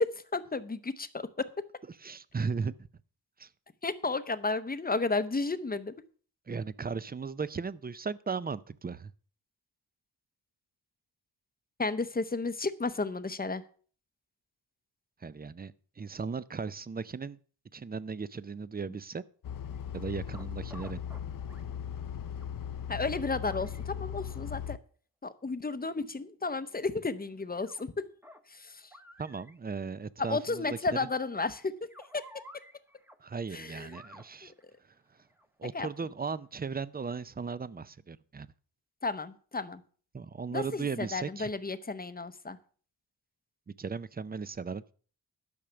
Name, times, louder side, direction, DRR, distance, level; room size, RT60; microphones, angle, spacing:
voice 1, 0.0-1.5 3.8-5.9 11.8-13.6 22.9-24.8 25.2-28.0 28.5-28.9 30.3-31.8 32.1-32.2 33.5-33.9 34.4-34.5 35.7-35.9 39.0-39.8 40.5-42.6, left 3 dB, 20° left, 13 dB, 0.7 m, -33 dB
voice 2, 1.9-2.9 3.4-3.5 6.5-9.1 15.2-17.4 17.7-19.2 19.9-21.0 29.2-31.1 33.2-34.5 34.8-35.3 35.6-38.5 40.1-41.5 43.7-44.9, right 5 dB, 25° right, 18 dB, 0.4 m, -37 dB
sound 1, 19.4-24.8, left 8 dB, 55° left, 0.6 m, -38 dB
sound 2, 19.6-20.4 20.7-21.2 21.5-21.6 22.4-22.5 23.4-23.9 26.8-26.9 27.4-27.8 28.2-28.4 28.9-29.6 31.6-33.2 33.9-35.9 36.6-36.7 37.1-37.2, left 1 dB, 5° right, 0.9 m, -53 dB
12.0 x 6.3 x 6.8 m, 0.43 s
wide cardioid pair, 155°, 41 cm